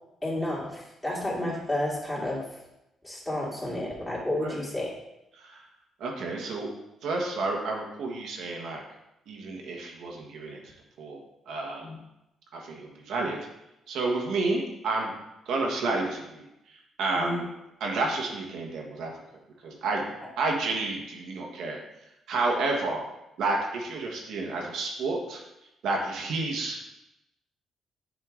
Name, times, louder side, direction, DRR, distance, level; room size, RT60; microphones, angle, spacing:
voice 1, 0.2-2.4 3.0-4.9 11.8-11.9 17.1-17.4, left 1 dB, 15° left, -6 dB, 2.3 m, -31 dB
voice 2, 6.0-6.7 7.0-8.8 9.3-11.9 12.5-13.4 13.9-15.1 15.4-17.5 17.8-19.1 19.6-20.0 20.4-21.8 22.3-23.0 23.4-25.4 25.8-26.9, right 3 dB, 75° right, 0 dB, 1.4 m, -30 dB
7.5 x 4.5 x 3.8 m, 0.90 s
cardioid pair, 90°, 0 cm